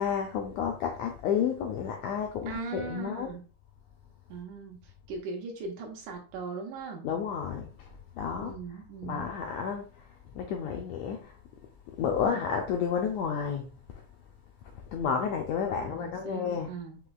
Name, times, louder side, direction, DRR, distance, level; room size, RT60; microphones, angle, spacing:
voice 1, 0.0-3.3 7.0-8.5 9.0-10.1 10.3-11.4 12.0-14.0 14.9-16.8, left 7 dB, 85° left, 1.5 m, -31 dB
voice 2, 2.5-3.4 4.3-7.0 8.4-9.3 12.2-12.5 15.8-17.0, right 4 dB, 75° right, 2.2 m, -39 dB
6.0 x 3.0 x 2.3 m
omnidirectional pair, 3.7 m